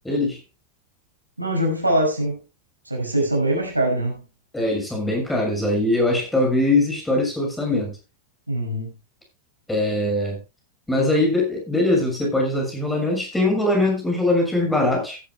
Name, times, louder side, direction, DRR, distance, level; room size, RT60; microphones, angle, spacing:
voice 1, 0.0-0.4 4.5-8.0 9.7-10.4 10.9-15.2, left 2 dB, 5° left, 6.5 m, -21 dB
voice 2, 1.4-2.4 2.9-4.2 8.5-8.9, right 1 dB, 85° right, 5.9 m, -22 dB
17.0 x 12.0 x 2.3 m
figure-of-eight pair, 90°, 0 cm